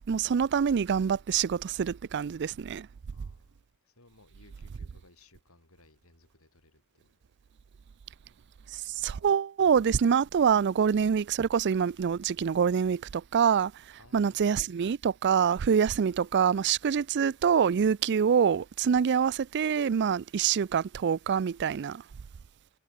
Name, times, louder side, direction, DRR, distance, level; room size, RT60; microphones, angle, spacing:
voice 1, 0.1-2.9 8.7-22.0, right 7 dB, 55° right, 0.4 m, -26 dB
voice 2, 3.1-3.6 3.8-7.2 14.0-14.6, left 2 dB, 90° left, 6.5 m, -60 dB
head